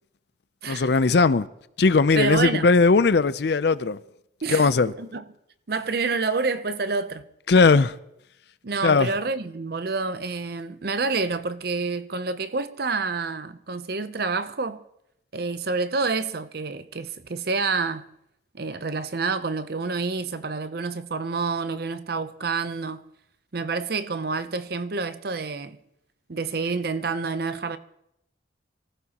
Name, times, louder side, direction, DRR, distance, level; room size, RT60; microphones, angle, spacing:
voice 1, 0.7-1.5 1.8-4.0 4.5-4.9 7.5-7.9 8.8-9.1, left 4 dB, 60° left, 0.5 m, -18 dB
voice 2, 2.1-2.7 4.4-5.2 5.7-7.2 8.6-14.8 15.3-18.1 18.5-23.0 23.5-25.8 26.3-27.8, right 4 dB, 55° right, 0.6 m, -28 dB
24.0 x 15.0 x 2.9 m
head